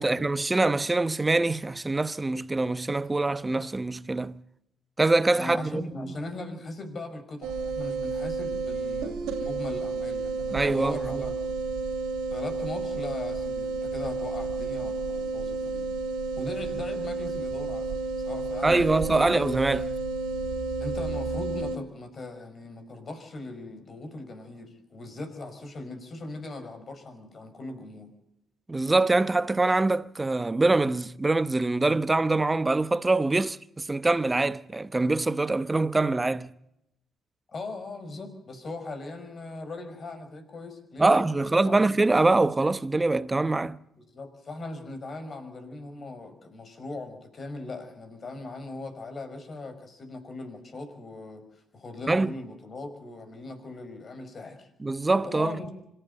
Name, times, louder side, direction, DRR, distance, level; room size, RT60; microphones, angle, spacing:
voice 1, 0.0-4.4 5.0-6.1 10.5-11.2 18.6-20.0 28.7-36.5 41.0-43.8 52.1-52.3 54.8-55.6, right 2 dB, 20° right, 0.9 m, -24 dB
voice 2, 5.4-11.4 12.3-15.9 16.4-17.9 18.2-19.3 20.8-28.1 37.5-42.0 44.1-54.7 55.2-55.7, left 2 dB, 45° left, 5.3 m, -39 dB
sound 1, 7.4-21.8, right 4 dB, 70° right, 2.4 m, -31 dB
25.5 x 12.5 x 8.8 m
hypercardioid pair, 50°, 0 cm